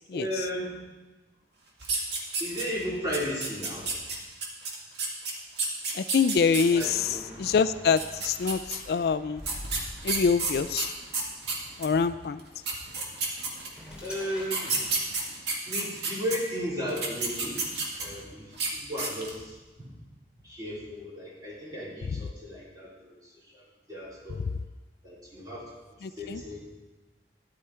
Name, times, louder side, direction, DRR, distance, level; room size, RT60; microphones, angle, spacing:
voice 1, 0.1-0.8 2.4-3.9 6.7-7.2 11.9-12.3 14.0-15.0 15.7-17.6 18.0-19.9 20.4-24.4 25.0-25.7 26.0-26.6, equal, 20° right, -7 dB, 4.0 m, -35 dB
sound 1, 1.8-2.8 3.1-6.9 7.8-8.8 9.4-11.9 12.4-12.5 12.6-13.9 14.4-16.4 16.9-18.2 18.5-18.7 19.0-19.4, right 4 dB, 75° right, 2.1 m, -31 dB
voice 2, 6.0-6.8 7.4-9.4 10.0-10.9 11.8-12.4 26.3-26.4, left 5 dB, 60° left, 13 dB, 0.3 m, -25 dB
sound 2, 6.6-15.4, equal, 5° right, 2.6 m, -47 dB
13.5 x 10.5 x 4.4 m, 1.2 s
head